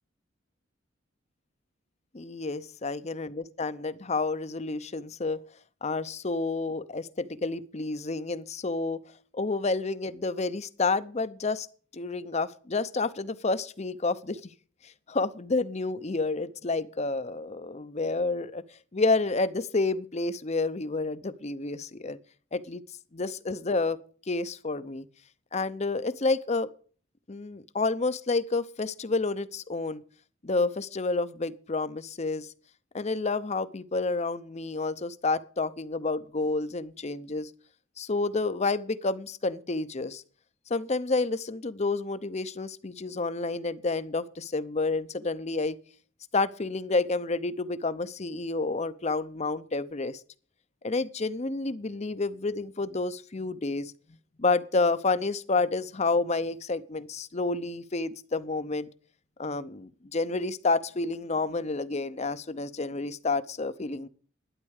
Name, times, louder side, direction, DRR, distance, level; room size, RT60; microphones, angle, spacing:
voice 1, 2.1-5.4 5.8-9.0 9.3-11.7 11.9-14.4 15.1-18.6 18.9-22.2 22.5-22.8 23.1-24.0 24.3-25.1 25.5-26.7 27.3-30.0 30.4-32.5 32.9-37.5 38.0-40.2 40.7-45.8 46.3-50.2 50.8-53.9 54.4-58.9 59.4-64.1, left 3 dB, 35° left, 0.7 m, -29 dB
12.0 x 9.7 x 6.5 m
head